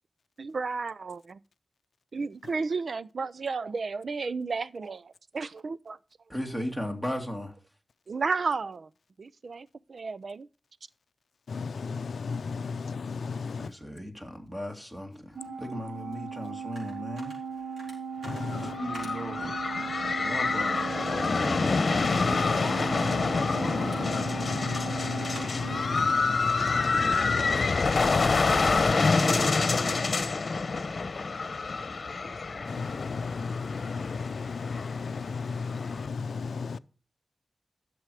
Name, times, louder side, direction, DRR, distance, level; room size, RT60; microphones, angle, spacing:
voice 1, 0.4-1.4 2.1-6.0 8.1-8.8 9.2-10.5, right 4 dB, 65° right, 0.5 m, -33 dB
voice 2, 6.3-7.5 13.6-15.2 15.6-17.3 18.6-19.9 20.2-21.0, equal, 10° right, 2.5 m, -36 dB
voice 3, 11.5-13.7 18.2-18.8 22.0-28.7 29.6-30.1 32.7-36.8, left 5 dB, 90° left, 0.5 m, -34 dB
Organ, 15.4-26.6, right 5 dB, 40° right, 1.2 m, -38 dB
sound 1, 16.1-27.8, right 1 dB, 90° right, 5.3 m, -53 dB
sound 2, 18.4-36.1, left 4 dB, 55° left, 1.0 m, -27 dB
12.5 x 7.0 x 4.9 m
wide cardioid pair, 85°, 0 cm